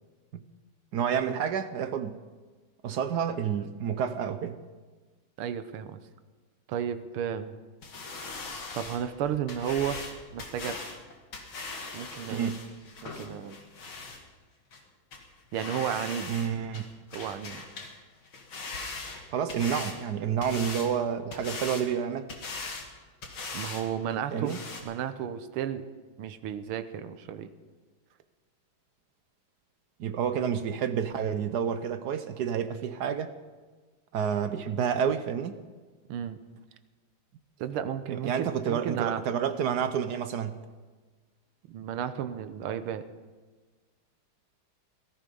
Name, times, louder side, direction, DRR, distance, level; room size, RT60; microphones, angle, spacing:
voice 1, 0.9-2.2 2.8-4.6 12.3-12.6 16.3-16.8 19.3-22.3 24.3-24.6 30.0-33.3 34.1-35.6 38.1-40.6, right 8 dB, 65° right, 11 dB, 1.1 m, -29 dB
voice 2, 5.4-6.0 6.7-7.5 8.7-10.0 10.3-11.0 11.9-12.5 13.0-13.6 15.5-16.3 17.1-17.6 23.5-24.5 24.8-25.9 26.2-27.5 36.1-36.4 37.6-39.2 41.7-43.0, right 9 dB, 85° right, 10 dB, 1.7 m, -33 dB
sound 1, 7.8-14.2 14.7-14.8 15.1-15.2 15.5-16.5 16.7-17.9 18.2-20.0 20.4-20.9 21.3-21.9 22.3-22.9 23.2-23.8 24.1-24.2 24.5-24.8, left 3 dB, 70° left, 2.8 m, -40 dB
17.5 x 14.0 x 5.4 m, 1.4 s
omnidirectional pair, 2.3 m